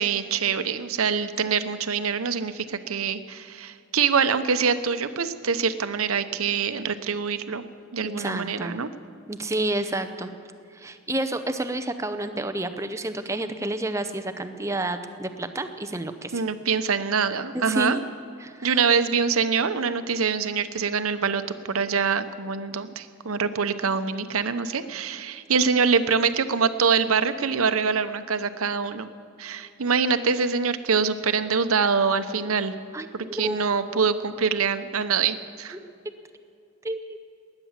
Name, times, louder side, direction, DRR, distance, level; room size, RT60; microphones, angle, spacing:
voice 1, 0.0-7.6 7.9-8.9 16.3-18.0 18.6-21.4 21.7-29.1 29.4-32.7 33.1-35.8, right 5 dB, 90° right, 11 dB, 0.8 m, -24 dB
voice 2, 8.0-8.8 9.3-10.3 10.7-16.4 17.5-18.0 18.4-18.8 32.9-33.6 35.7-35.9 36.8-37.2, right 1 dB, 15° right, 9 dB, 0.6 m, -30 dB
20.0 x 9.9 x 7.3 m, 2.5 s
head